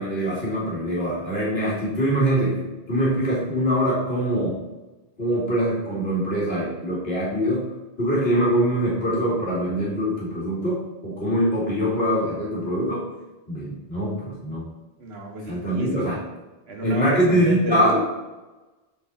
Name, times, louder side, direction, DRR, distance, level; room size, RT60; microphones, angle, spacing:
voice 1, 0.0-4.5 5.2-7.6 8.0-13.1 13.5-14.6 15.5-16.2 16.8-18.0, equal, 75° left, -6 dB, 2.7 m, -23 dB
voice 2, 15.0-16.1 16.7-18.0, right 2 dB, 80° right, 1 dB, 1.4 m, -31 dB
7.8 x 4.8 x 4.1 m, 1.1 s
omnidirectional pair, 1.0 m